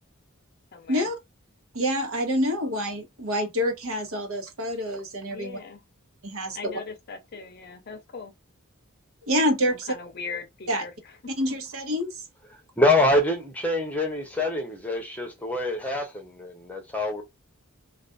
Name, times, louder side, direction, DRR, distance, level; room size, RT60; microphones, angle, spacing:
voice 1, 0.7-1.1 5.3-5.8 6.6-8.3 9.7-10.9, left 5 dB, 45° left, 0.5 m, -39 dB
voice 2, 1.7-5.6 6.2-6.8 9.3-9.9 10.7-10.8 11.4-12.1, equal, 75° right, 1.0 m, -27 dB
voice 3, 12.8-17.2, left 1 dB, 5° left, 0.6 m, -25 dB
2.5 x 2.3 x 2.2 m
head